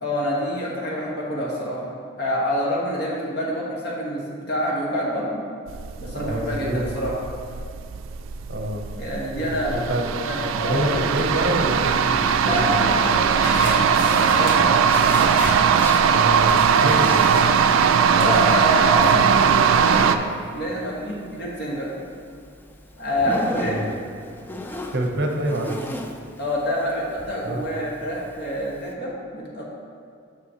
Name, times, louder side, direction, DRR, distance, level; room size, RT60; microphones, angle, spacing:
voice 1, 0.0-5.4 6.0-7.2 9.0-9.8 10.2-11.0 12.4-15.3 17.3-17.5 18.1-20.2 20.5-22.0 23.0-23.9 26.4-29.6, equal, 55° left, -4 dB, 1.4 m, -27 dB
sound 1, 5.7-20.2, right 7 dB, 90° right, 0.3 m, -19 dB
voice 2, 6.1-6.9 8.5-8.9 9.4-10.1 10.6-13.2 16.1-17.3 23.6-24.0 24.9-25.9 27.4-27.7, right 1 dB, 55° right, 1 dB, 0.7 m, -27 dB
Zipper (clothing), 11.0-28.9, left 1 dB, 10° left, 0.3 m, -38 dB
sound 2, 13.4-19.2, left 1 dB, 85° left, 1.6 m, -34 dB
6.9 x 6.3 x 2.9 m, 2.4 s
head